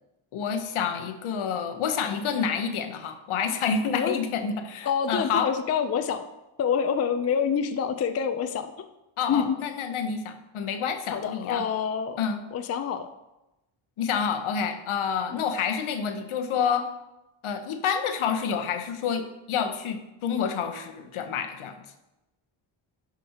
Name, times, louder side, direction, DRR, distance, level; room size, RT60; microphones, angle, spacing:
voice 1, 0.3-5.5 9.2-11.7 12.2-12.4 14.0-16.9 17.4-21.8, left 6 dB, 75° left, 7 dB, 0.9 m, -28 dB
voice 2, 4.8-6.3 6.6-8.7 9.3-9.6 11.1-12.3 12.5-13.1 15.3-15.4, left 7 dB, 35° left, 8 dB, 0.4 m, -27 dB
11.0 x 5.1 x 2.8 m, 0.97 s
cardioid pair, 120°, 49 cm